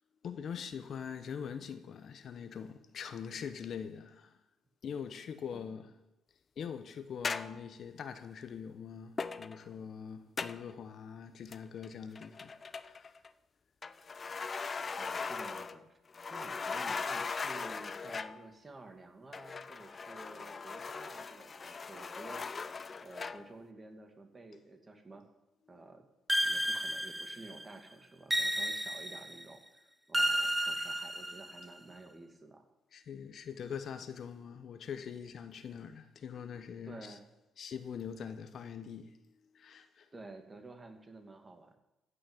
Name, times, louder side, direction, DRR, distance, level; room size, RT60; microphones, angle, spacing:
voice 1, 0.2-4.4 4.8-5.9 6.6-13.2 32.9-37.2 37.6-39.2 39.5-40.1, left 7 dB, 60° left, 1.1 m, -43 dB
sound 1, 7.2-7.6 9.2-9.6 10.4-10.7 11.5-11.9 12.2-13.3 13.8-15.8 16.1-18.4 19.3-23.5, left 5 dB, 35° left, 0.7 m, -39 dB
voice 2, 15.0-16.0 16.3-25.2 25.7-26.1 26.4-29.8 30.1-32.7 36.8-37.2 40.1-41.8, right 2 dB, 25° right, 2.3 m, -52 dB
sound 2, 26.3-27.6 28.3-29.4 30.1-31.7, equal, 5° right, 0.9 m, -32 dB
14.5 x 6.4 x 9.1 m
cardioid pair, 90°, 0 cm